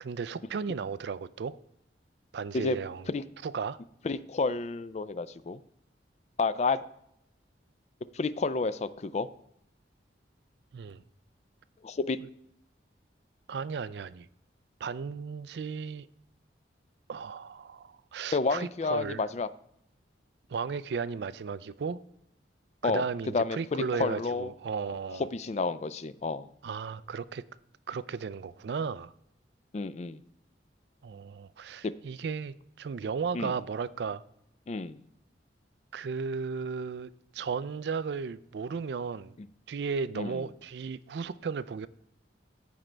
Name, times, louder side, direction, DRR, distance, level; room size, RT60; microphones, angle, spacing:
voice 1, 0.0-1.6 2.3-3.1 3.4-3.8 10.7-11.0 13.5-14.3 14.8-16.1 17.1-19.2 20.5-22.0 22.8-25.3 26.6-27.4 27.9-29.1 31.0-34.2 35.9-39.3 39.7-41.9, right 5 dB, 65° right, 0.4 m, -35 dB
voice 2, 4.0-5.6 6.4-6.8 8.1-9.3 11.8-12.2 18.3-19.5 22.8-23.0 23.3-24.5 25.3-26.5 29.7-30.2 31.8-31.9 33.3-33.5 34.7-35.0 39.4-39.5 40.1-40.4, left 3 dB, 40° left, 0.4 m, -30 dB
15.0 x 5.1 x 3.3 m
head